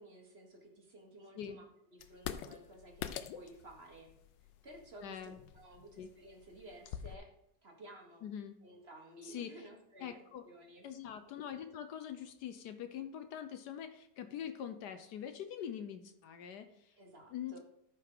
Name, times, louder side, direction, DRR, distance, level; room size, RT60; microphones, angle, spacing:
voice 1, 0.0-1.6 1.9-4.1 4.6-7.3 7.6-8.3 8.6-10.9 17.0-17.6, right 1 dB, 40° right, 0 dB, 1.4 m, -54 dB
sound 1, 2.0-7.2, left 9 dB, 90° left, 1.3 m, -46 dB
voice 2, 5.0-5.4 6.0-6.1 8.2-8.6 9.2-9.5 10.0-10.4 10.8-17.0 17.3-17.6, left 9 dB, 70° left, 9 dB, 1.2 m, -44 dB
13.5 x 4.6 x 3.8 m, 0.75 s
omnidirectional pair, 1.9 m